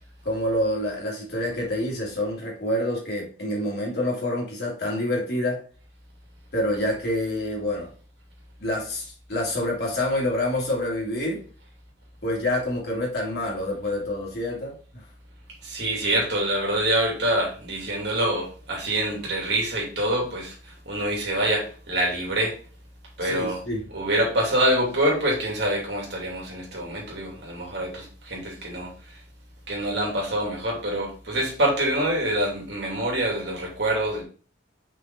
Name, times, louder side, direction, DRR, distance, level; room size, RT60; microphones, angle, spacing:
voice 1, 0.2-5.6 6.5-7.9 8.6-11.4 12.2-15.0 23.2-23.8, left 1 dB, 55° left, -3 dB, 2.6 m, -27 dB
voice 2, 15.6-20.5 20.9-22.5 23.2-23.6 23.9-28.9 29.7-34.2, right 1 dB, 60° right, -2 dB, 2.9 m, -25 dB
5.8 x 5.1 x 3.9 m, 0.40 s
head